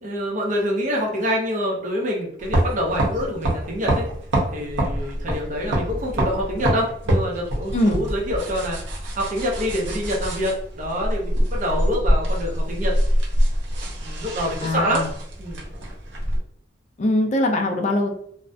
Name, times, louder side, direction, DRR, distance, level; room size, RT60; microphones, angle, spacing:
voice 1, 0.0-4.1 4.5-8.8 9.1-13.0 14.0-15.1 15.4-15.6, equal, 45° right, -1 dB, 0.6 m, -26 dB
sound 1, 2.4-16.4, equal, 85° right, 0.7 m, -25 dB
voice 2, 14.6-15.1 17.0-18.1, left 1 dB, 40° left, 3 dB, 0.3 m, -21 dB
2.4 x 2.1 x 2.5 m, 0.67 s
head